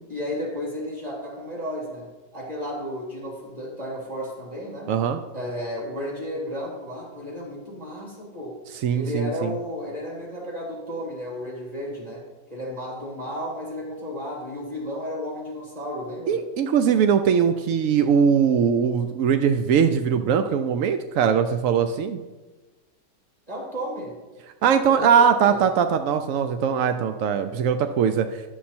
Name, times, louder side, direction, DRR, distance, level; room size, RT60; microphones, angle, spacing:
voice 1, 0.1-4.9 5.3-8.6 8.9-16.4 23.5-24.2 24.8-25.6, equal, 20° right, -4 dB, 3.0 m, -33 dB
voice 2, 4.9-5.2 8.7-9.5 16.3-22.2 24.6-28.4, right 7 dB, 75° right, 8 dB, 0.7 m, -21 dB
10.5 x 7.3 x 4.3 m, 1.2 s
omnidirectional pair, 1.9 m